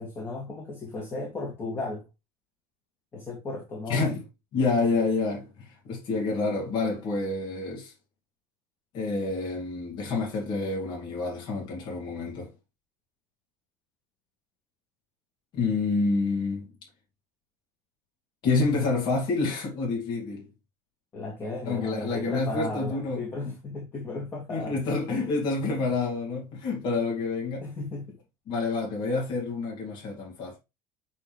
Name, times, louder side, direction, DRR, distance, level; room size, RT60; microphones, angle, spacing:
voice 1, 0.0-2.1 3.1-4.1 21.1-24.8 25.1-25.3 27.6-28.2, left 3 dB, 25° left, 2.2 m, -35 dB
voice 2, 3.9-4.2 4.5-7.9 8.9-12.5 15.5-16.7 18.4-20.5 21.7-23.5 24.5-27.6 28.5-30.6, left 3 dB, 45° left, 2.4 m, -28 dB
8.2 x 3.6 x 3.3 m
cardioid pair, 145°, 11 cm